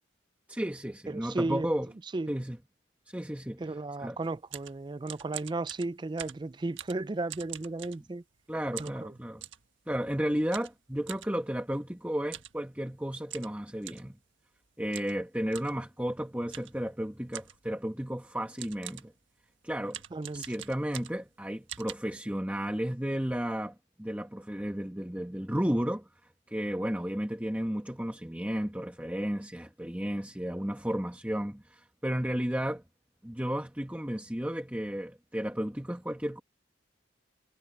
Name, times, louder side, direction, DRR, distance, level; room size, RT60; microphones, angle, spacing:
voice 1, 0.5-1.9 2.3-2.6 3.1-3.6 4.0-4.2 8.5-9.4 9.9-14.2 14.8-19.1 19.6-20.0 20.3-26.1 26.5-32.8 33.2-36.4, equal, 10° right, 1.2 m, -33 dB
voice 2, 1.1-1.7 2.1-2.3 3.6-8.2 8.8-9.1 20.1-20.5, right 2 dB, 25° right, 0.4 m, -34 dB
sound 1, 4.2-8.4 8.8-9.7 10.5-11.3 12.2-12.6 12.9-13.0 13.3-14.1 14.9-15.2 15.5-15.8 16.5-16.8 17.3-17.7 18.2-18.3 18.6-19.2 19.9-21.3 21.7-21.9, right 11 dB, 85° right, 1.5 m, -44 dB
head